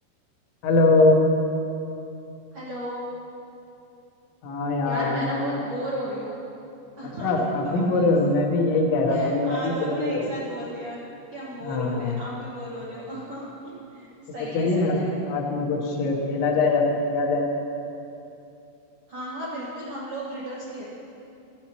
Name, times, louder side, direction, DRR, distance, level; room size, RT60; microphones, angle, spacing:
voice 1, 0.6-1.2 4.4-5.3 7.2-10.2 11.7-12.2 14.5-15.0 15.3-17.5, left 2 dB, 80° left, -1 dB, 3.4 m, -22 dB
voice 2, 2.5-3.0 4.8-6.4 7.0-8.1 9.1-11.0 11.3-15.1 19.1-20.8, equal, 85° right, -8 dB, 1.2 m, -35 dB
14.5 x 11.0 x 3.0 m, 2.8 s
omnidirectional pair, 5.2 m